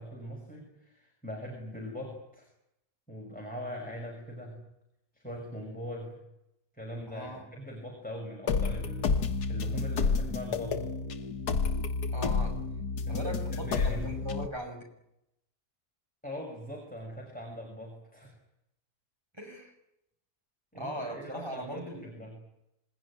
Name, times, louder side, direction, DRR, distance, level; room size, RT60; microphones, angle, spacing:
voice 1, 0.0-2.5 3.1-4.6 5.1-6.2 6.7-9.2 9.5-10.9 13.1-14.1 16.2-18.4 20.7-22.4, equal, 5° left, 0 dB, 5.9 m, -41 dB
voice 2, 7.1-7.5 12.1-12.6 13.1-14.9 19.4-19.7 20.7-22.1, equal, 15° right, 2 dB, 6.0 m, -39 dB
sound 1, 8.5-14.5, left 4 dB, 90° left, 1.9 m, -30 dB
27.0 x 19.0 x 10.0 m, 0.85 s
omnidirectional pair, 1.7 m